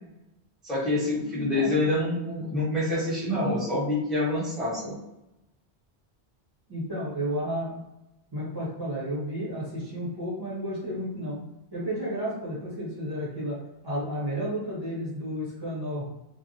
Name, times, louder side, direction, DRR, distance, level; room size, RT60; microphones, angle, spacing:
voice 1, 0.6-4.9, left 2 dB, ahead, -9 dB, 1.0 m, -27 dB
voice 2, 1.3-1.7 6.7-7.8 8.3-11.4 11.7-13.6 13.8-16.0, equal, 25° right, -10 dB, 0.9 m, -32 dB
2.3 x 2.1 x 2.7 m, 0.91 s
omnidirectional pair, 1.0 m